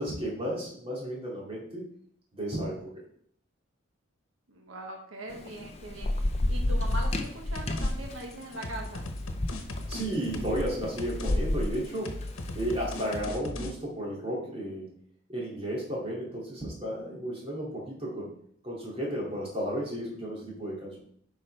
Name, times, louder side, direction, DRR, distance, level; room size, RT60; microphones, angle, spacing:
voice 1, 0.0-1.8 2.3-2.9 9.9-14.9 15.3-18.3 18.6-21.0, right 1 dB, 30° right, -4 dB, 2.4 m, -33 dB
voice 2, 4.5-9.0, right 1 dB, 85° right, 2 dB, 1.2 m, -41 dB
Thunder / Rain, 5.3-12.9, left 1 dB, 30° left, 0.6 m, -31 dB
sound 1, 6.9-7.3 7.6-7.9 8.2-10.7 11.0-11.4 11.6-13.7, left 2 dB, 90° left, 1.0 m, -37 dB
9.0 x 5.6 x 3.3 m, 0.63 s
head